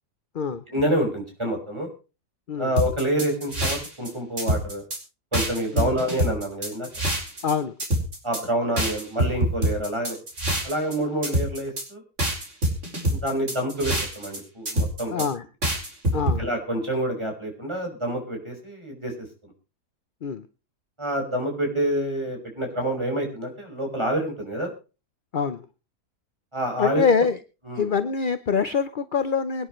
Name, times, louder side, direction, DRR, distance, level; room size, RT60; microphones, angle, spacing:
voice 1, 0.7-1.9 2.6-4.8 5.3-6.9 8.2-10.2 10.6-12.0 13.1-15.1 16.4-19.1 21.0-24.7 26.5-27.1 27.7-27.9, right 1 dB, 15° right, 1 dB, 5.9 m, -27 dB
sound 1, 2.8-4.1 4.4-5.0 5.3-7.5 7.8-8.4 8.8-10.9 11.2-11.8 12.2-14.4 14.7-15.3 15.6-16.4, right 1 dB, 45° right, 5.0 m, -25 dB
voice 2, 7.4-7.7 15.1-15.4 16.1-16.5 20.2-20.4 25.3-25.6 26.8-27.4 27.8-29.7, left 6 dB, 45° left, 12 dB, 0.7 m, -24 dB
25.0 x 10.0 x 3.2 m, 0.33 s
omnidirectional pair, 1.7 m